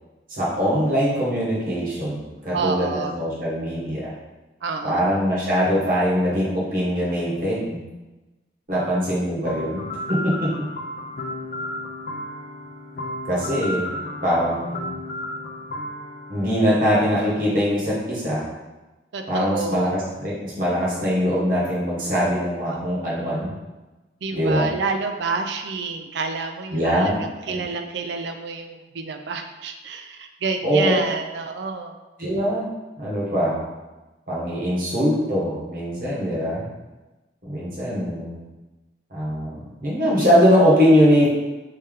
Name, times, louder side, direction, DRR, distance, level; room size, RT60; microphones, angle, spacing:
voice 1, 0.3-4.1 4.8-7.8 8.7-9.8 10.1-10.3 13.3-13.9 14.2-14.9 16.3-18.4 19.3-23.5 24.3-24.7 26.7-27.1 27.5-27.6 30.6-30.9 32.2-32.7 33.0-33.6 34.3-36.7 37.4-38.4 39.1-41.3, equal, 50° right, -6 dB, 1.2 m, -22 dB
voice 2, 2.5-3.1 4.6-5.1 19.1-20.0 22.7-22.8 24.2-31.9, right 4 dB, 85° right, 6 dB, 0.4 m, -29 dB
sound 1, 9.4-17.3, left 1 dB, 55° left, 0.4 m, -33 dB
3.3 x 2.8 x 3.6 m, 1.1 s
head